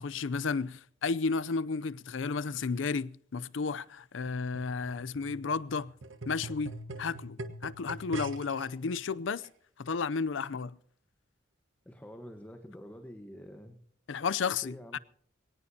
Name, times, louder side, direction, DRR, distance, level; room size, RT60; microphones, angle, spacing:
voice 1, 0.0-5.9 6.3-9.5 9.8-10.7 14.1-15.0, left 5 dB, 80° left, 0.5 m, -33 dB
sound 1, 4.3-8.7 9.4-9.5, right 2 dB, 85° right, 1.3 m, -43 dB
voice 2, 11.8-13.8 14.6-15.0, equal, 10° left, 1.2 m, -47 dB
21.5 x 18.5 x 2.8 m
head